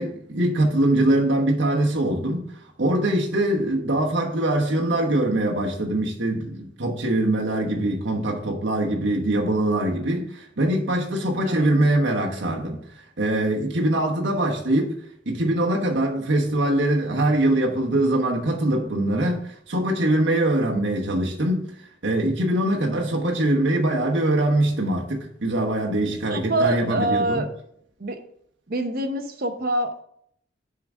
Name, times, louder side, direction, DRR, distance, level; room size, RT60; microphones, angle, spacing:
voice 1, 0.0-2.5 2.8-12.8 13.2-14.9 15.3-21.7 22.0-27.4, right 1 dB, 70° right, 1.1 m, -23 dB
voice 2, 11.4-11.7 26.1-27.5 28.0-28.2 28.7-30.0, right 2 dB, 50° right, 0.8 m, -25 dB
7.1 x 3.8 x 6.1 m
head